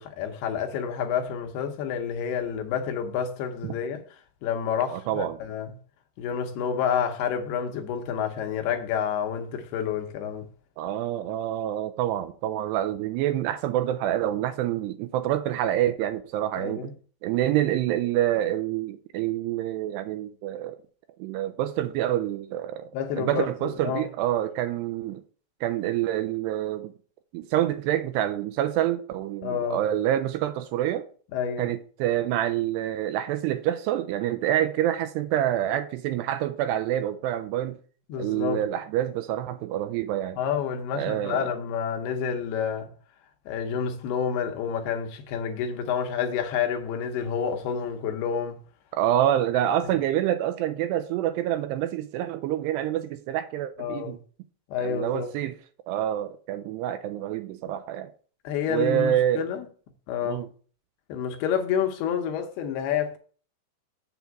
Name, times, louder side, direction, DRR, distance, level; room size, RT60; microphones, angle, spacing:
voice 1, 0.0-4.0 4.4-5.8 6.2-10.5 16.6-16.9 22.9-24.1 29.4-29.8 31.3-31.7 38.1-38.6 40.4-42.9 43.5-48.6 53.8-54.2 54.7-55.3 58.4-59.7 60.1-60.5 61.1-63.2, left 7 dB, 75° left, 2.5 m, -29 dB
voice 2, 4.9-5.4 10.8-16.9 17.2-20.8 21.2-22.9 23.2-25.2 25.6-26.9 27.3-31.1 31.6-37.8 38.2-40.4 40.9-41.5 48.9-54.2 54.8-55.5 55.9-58.1 58.7-59.5 60.3-60.5, right 12 dB, 80° right, 2.5 m, -27 dB
7.4 x 7.1 x 4.6 m
omnidirectional pair, 5.1 m